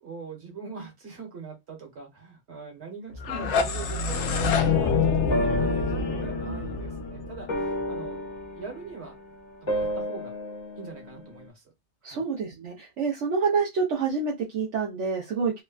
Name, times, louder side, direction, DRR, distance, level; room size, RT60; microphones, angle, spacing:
voice 1, 0.0-9.2 9.6-10.3 10.7-11.6 12.0-12.2, right 5 dB, 65° right, 1 dB, 1.6 m, -42 dB
sound 1, 3.1-8.0, left 5 dB, 80° left, 0.9 m, -26 dB
sound 2, 4.5-4.6 5.3-11.5, equal, 40° left, 1.2 m, -32 dB
voice 2, 12.0-15.6, right 5 dB, 85° right, -1 dB, 1.1 m, -27 dB
3.4 x 2.2 x 2.3 m, 0.20 s
omnidirectional pair, 1.2 m